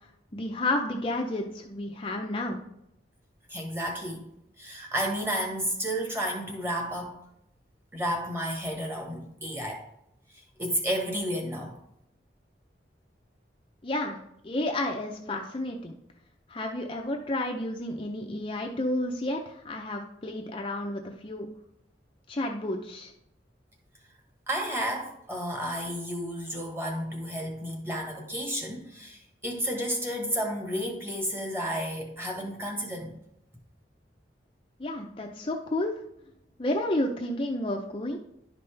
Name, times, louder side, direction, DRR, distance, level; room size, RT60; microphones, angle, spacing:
voice 1, 0.3-2.6 13.8-14.2 14.4-15.9 16.5-21.5 22.3-23.1 34.8-35.9 36.6-38.2, left 1 dB, 30° left, 2 dB, 0.6 m, -31 dB
voice 2, 3.5-7.2 7.9-9.8 10.6-11.7 24.5-33.1, equal, 15° right, 1 dB, 1.4 m, -32 dB
11.0 x 5.4 x 3.3 m, 0.79 s
head